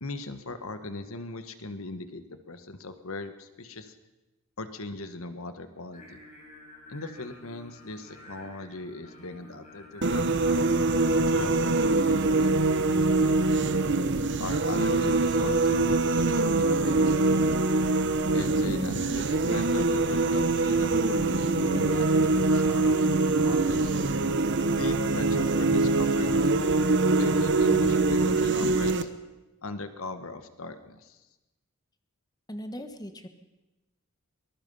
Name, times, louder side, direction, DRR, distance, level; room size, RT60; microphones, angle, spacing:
voice 1, 0.0-4.0 4.6-6.2 6.9-10.6 11.1-13.7 14.4-17.1 18.3-23.9 24.8-26.8 27.2-29.1 29.6-31.2, left 2 dB, 70° left, 9 dB, 1.5 m, -39 dB
Singing, 5.9-12.2, left 2 dB, 35° left, 6.4 m, -51 dB
sound 1, 10.0-29.0, right 3 dB, 55° right, 1.1 m, -24 dB
voice 2, 32.5-33.3, equal, 20° left, 7 dB, 1.4 m, -39 dB
24.0 x 20.0 x 5.6 m, 1.0 s
head